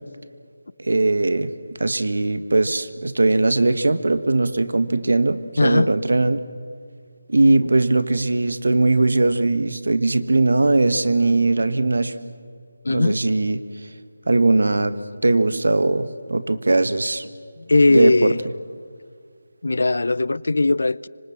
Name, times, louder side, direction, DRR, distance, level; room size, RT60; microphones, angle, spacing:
voice 1, 0.8-1.5 1.8-6.4 7.3-12.1 12.9-13.6 14.3-15.0 15.2-17.2 17.9-18.3, right 2 dB, 75° right, 1.5 m, -19 dB
voice 2, 5.6-5.9 12.8-13.2 17.6-18.4 19.6-21.1, left 2 dB, 65° left, 0.5 m, -19 dB
27.0 x 25.0 x 6.0 m
figure-of-eight pair, 180°, 0 cm